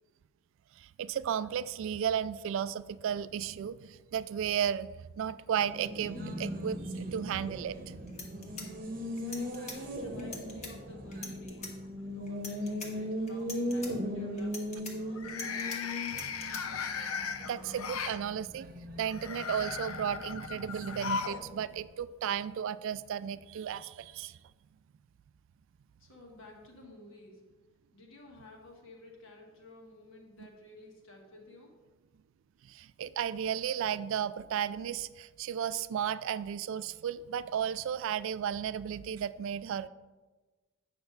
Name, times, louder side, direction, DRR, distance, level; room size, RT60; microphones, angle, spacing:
voice 1, 0.8-7.8 17.5-18.7 19.0-24.4 32.7-39.9, right 8 dB, 65° right, 18 dB, 0.3 m, -34 dB
Race car auto racing, 5.4-21.7, equal, 45° right, 0.9 m, -39 dB
sound 1, 7.7-7.8 8.1-9.8 10.2-10.7 11.1-11.7 12.3-12.9 13.3-13.9 14.4-15.8 16.1-16.6, left 3 dB, 35° left, 1.2 m, -43 dB
voice 2, 9.2-11.8 12.3-16.0 26.0-27.4 27.9-31.7, left 1 dB, 65° left, 0 dB, 1.6 m, -52 dB
sound 2, 11.6-12.2 12.6-13.0 15.1-18.2 19.0-21.4 21.7-21.8 22.9-23.0, left 5 dB, 90° left, 0.6 m, -37 dB
8.7 x 5.9 x 4.0 m, 1.2 s
head